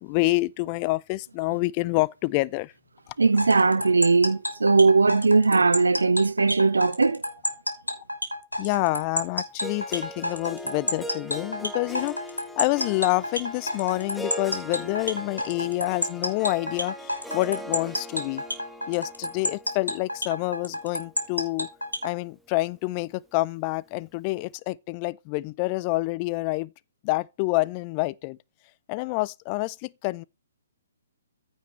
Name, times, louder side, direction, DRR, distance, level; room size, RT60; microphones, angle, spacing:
voice 1, 0.0-2.7 8.6-12.2 12.6-18.4 18.9-21.7 22.0-26.7 27.0-28.4 28.9-30.2, left 22 dB, 30° left, 0.4 m, -27 dB
voice 2, 3.2-7.2, right 4 dB, 70° right, 0.8 m, -19 dB
sound 1, 3.4-22.1, left 1 dB, 90° left, 2.8 m, -30 dB
Harp, 9.6-21.7, equal, ahead, 0.9 m, -40 dB
15.0 x 5.3 x 3.1 m
figure-of-eight pair, 130°, 0 cm